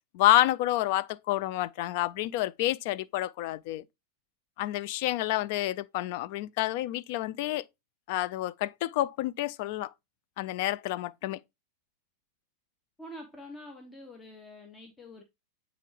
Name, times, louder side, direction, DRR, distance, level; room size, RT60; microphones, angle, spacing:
voice 1, 0.1-3.8 4.6-7.6 8.1-9.9 10.4-11.4, left 15 dB, 50° left, 0.3 m, -28 dB
voice 2, 13.0-15.2, left 1 dB, 15° left, 0.9 m, -46 dB
8.2 x 3.7 x 3.2 m
figure-of-eight pair, 90°, 0 cm